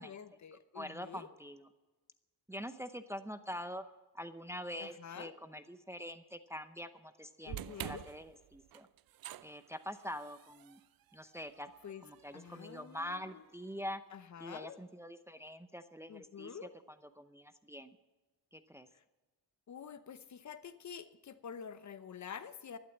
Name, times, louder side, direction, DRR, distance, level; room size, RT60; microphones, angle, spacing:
voice 1, 0.0-1.3 4.8-5.3 7.5-8.0 11.8-12.0 12.3-13.4 14.1-14.8 16.1-16.7 18.9-19.0 19.7-22.8, left 7 dB, 45° left, 12 dB, 0.9 m, -48 dB
voice 2, 0.5-1.7 2.5-3.8 4.1-8.9 9.4-10.8 11.1-11.7 12.0-14.0 14.4-16.7 17.2-18.0 18.5-18.9, equal, 5° right, 10 dB, 0.7 m, -45 dB
sound 1, 7.5-13.7, right 13 dB, 60° right, 0.5 m, -50 dB
12.0 x 12.0 x 7.2 m, 1.1 s
cardioid pair, 105°, 40 cm